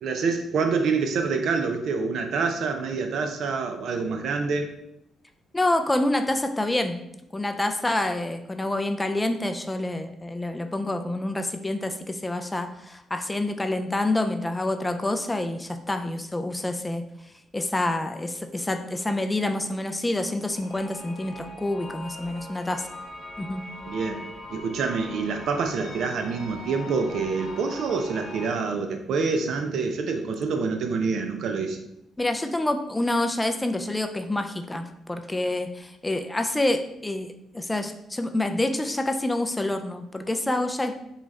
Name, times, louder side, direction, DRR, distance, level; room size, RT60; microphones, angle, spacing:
voice 1, 0.0-4.7 23.9-31.8, right 4 dB, 70° right, 5 dB, 0.4 m, -27 dB
voice 2, 5.5-7.0 7.3-17.0 17.5-22.9 23.4-23.6 32.2-40.9, left 1 dB, 15° left, 6 dB, 0.3 m, -27 dB
sound 1, 20.5-28.5, left 2 dB, 70° left, 1.1 m, -41 dB
3.9 x 2.3 x 3.2 m, 0.80 s
cardioid pair, 90°, 0 cm